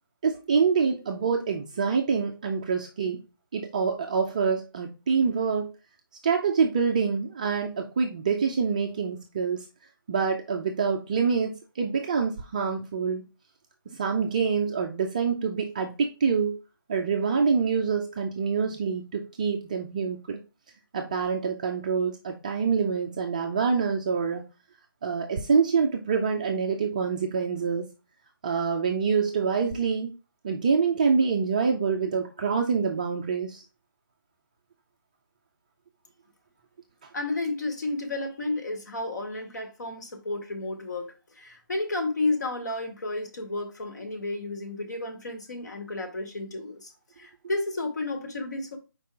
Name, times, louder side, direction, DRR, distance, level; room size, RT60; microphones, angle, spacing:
voice 1, 0.2-3.2 3.5-5.7 6.2-9.7 10.1-13.2 13.9-16.6 16.9-20.4 20.9-24.5 25.0-27.9 28.4-30.1 30.4-33.6, right 5 dB, 20° right, 0.4 m, -26 dB
voice 2, 37.1-46.9 47.2-48.8, left 2 dB, 50° left, 1.7 m, -32 dB
4.7 x 4.2 x 4.8 m
figure-of-eight pair, 160°, 12 cm